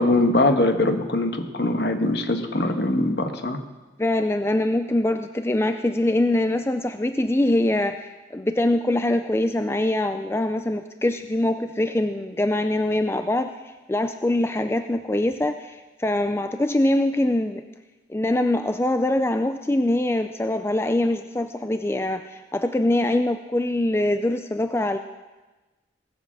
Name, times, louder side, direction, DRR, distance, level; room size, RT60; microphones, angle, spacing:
voice 1, 0.0-3.6, left 2 dB, 60° left, 6 dB, 1.4 m, -22 dB
voice 2, 4.0-13.5 13.9-17.6 18.1-25.0, left 1 dB, 15° left, 8 dB, 0.4 m, -23 dB
18.5 x 7.6 x 7.4 m, 1.2 s
head